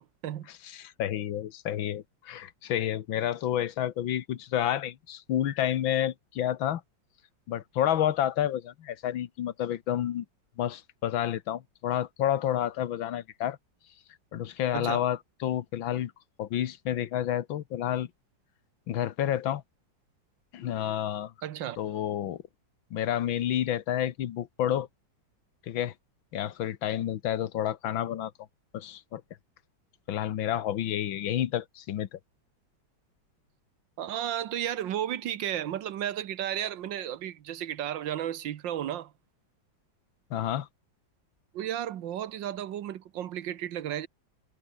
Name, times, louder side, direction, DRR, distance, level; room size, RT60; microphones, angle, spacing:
voice 1, 0.0-0.5 14.7-15.0 21.4-21.8 34.0-39.1 41.5-44.1, right 11 dB, 75° right, 1.7 m, -33 dB
voice 2, 0.6-6.8 7.5-10.3 10.6-13.6 14.3-16.1 16.4-18.1 18.9-19.6 20.5-21.3 21.8-22.4 22.9-24.9 25.7-25.9 26.3-28.3 28.7-29.2 30.1-32.2 40.3-40.7, left 11 dB, 85° left, 1.8 m, -30 dB
omnidirectional pair, 2.1 m